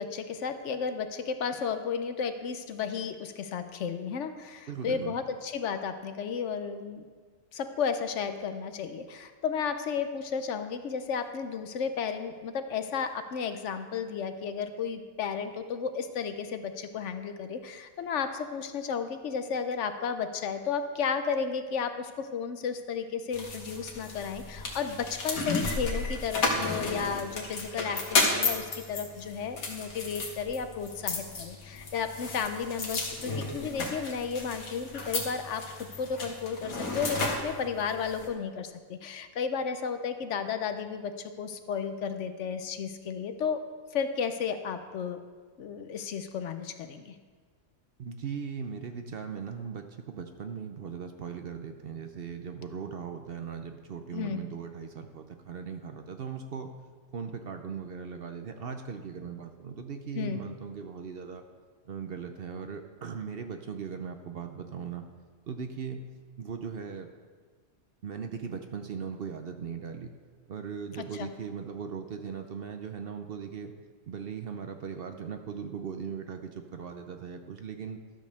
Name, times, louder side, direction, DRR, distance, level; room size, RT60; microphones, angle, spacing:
voice 1, 0.0-7.0 7.5-35.7 36.0-43.6 43.9-45.2 45.6-47.1 54.1-54.4 60.1-60.4 70.9-71.3, left 6 dB, 65° left, 9 dB, 0.9 m, -33 dB
voice 2, 4.7-5.1 48.0-56.7 57.1-61.4 61.9-65.0 65.5-66.0 66.4-67.1 68.0-70.1 70.5-73.7 74.1-78.0, right 6 dB, 55° right, 6 dB, 0.7 m, -38 dB
sound 1, 23.3-38.3, left 3 dB, 80° left, 1.8 m, -33 dB
12.5 x 5.3 x 6.6 m, 1.5 s
omnidirectional pair, 1.4 m